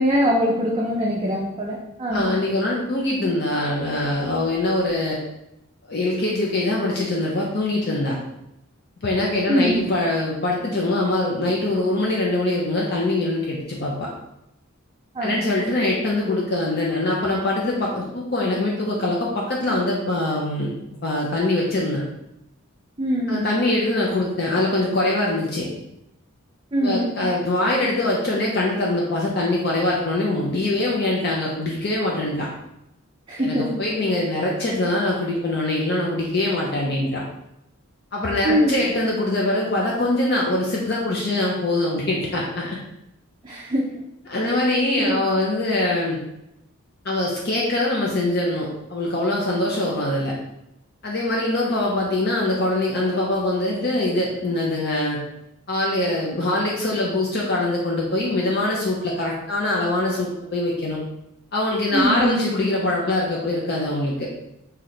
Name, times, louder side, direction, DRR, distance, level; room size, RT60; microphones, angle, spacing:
voice 1, 0.0-2.3 9.5-9.9 15.1-15.4 23.0-23.5 26.7-27.2 33.3-33.7 38.4-38.9 43.4-44.0 44.4-44.6 45.0-45.2 61.9-62.9, equal, 25° right, -4 dB, 0.4 m, -23 dB
voice 2, 2.1-5.2 5.9-8.2 9.0-14.1 15.2-20.7 21.0-22.0 23.3-25.7 26.8-32.5 33.4-37.2 38.1-42.8 44.3-46.2 47.0-50.3 51.0-55.2 55.7-61.0 61.5-64.3, left 2 dB, 50° left, -3 dB, 0.6 m, -23 dB
3.1 x 2.8 x 4.0 m, 0.85 s
head